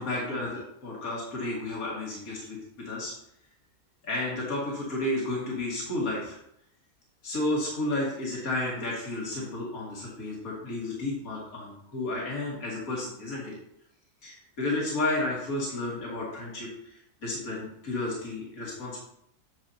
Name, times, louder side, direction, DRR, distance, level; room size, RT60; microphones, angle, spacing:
voice 1, 0.0-3.1 4.0-6.4 7.2-13.5 14.2-19.0, left 2 dB, 65° left, -4 dB, 2.5 m, -32 dB
9.4 x 7.0 x 2.9 m, 0.74 s
omnidirectional pair, 1.6 m